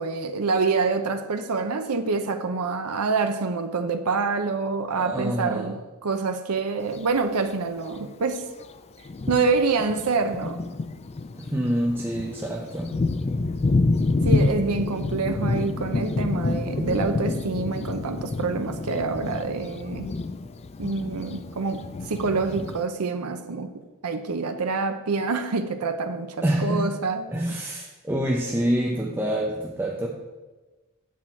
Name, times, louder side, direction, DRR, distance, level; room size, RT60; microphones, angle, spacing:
voice 1, 0.0-8.5 9.3-10.6 14.2-20.1 20.8-23.7 24.0-27.6, right 4 dB, 80° right, 7 dB, 0.7 m, -26 dB
voice 2, 5.0-5.7 11.4-13.0 26.4-26.9 27.3-30.1, equal, 10° right, -2 dB, 0.7 m, -26 dB
Thunder, 6.8-7.0 7.9-8.0 8.6-8.7 9.1-22.8, left 3 dB, 30° left, 0.4 m, -28 dB
8.5 x 7.5 x 4.4 m, 1.2 s
head